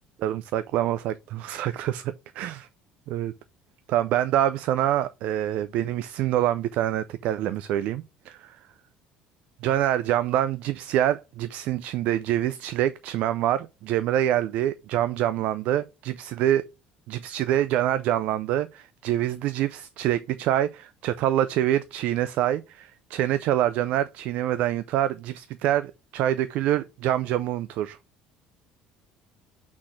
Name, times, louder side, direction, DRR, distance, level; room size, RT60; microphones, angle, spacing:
voice 1, 0.2-2.7 3.1-3.3 3.9-8.6 9.6-16.7 17.1-28.0, right 12 dB, 55° right, 0.5 m, -26 dB
5.9 x 4.2 x 6.3 m
cardioid pair, 175°, 3 cm